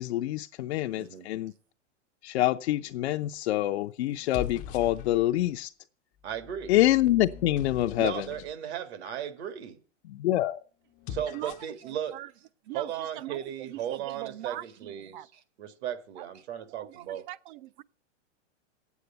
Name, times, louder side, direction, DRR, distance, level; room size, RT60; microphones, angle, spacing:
voice 1, 0.0-1.5 2.2-5.7 6.7-8.3 10.1-10.6, left 14 dB, 65° left, 0.6 m, -26 dB
sound 1, 2.9-3.3 4.1-5.5 6.2-8.5 10.9-11.8, left 9 dB, 20° left, 0.5 m, -42 dB
voice 2, 6.2-6.7 8.0-9.8 11.1-12.1 12.7-17.2, right 10 dB, 60° right, 1.8 m, -36 dB
voice 3, 11.3-12.3 12.6-15.3 16.2-16.3 16.7-17.8, right 15 dB, 45° right, 0.5 m, -42 dB
8.6 x 8.2 x 8.1 m
hypercardioid pair, 145°, 36 cm